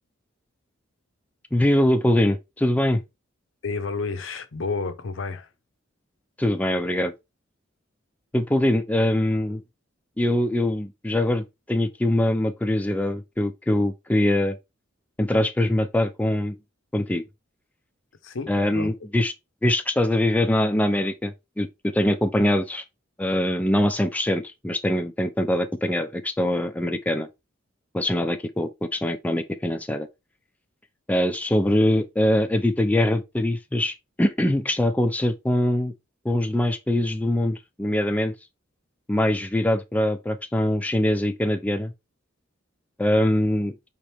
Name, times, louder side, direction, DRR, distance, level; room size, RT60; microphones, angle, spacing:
voice 1, 1.5-3.0 6.4-7.1 8.3-9.6 10.2-14.6 15.2-16.6 16.9-17.2 18.5-19.3 19.6-22.8 23.2-27.3 27.9-30.1 31.1-35.9 36.2-38.3 39.1-41.9 43.0-43.7, left 1 dB, 10° left, 0.3 m, -23 dB
voice 2, 3.6-5.5 18.2-18.9, left 4 dB, 70° left, 0.6 m, -30 dB
5.0 x 2.9 x 3.3 m
head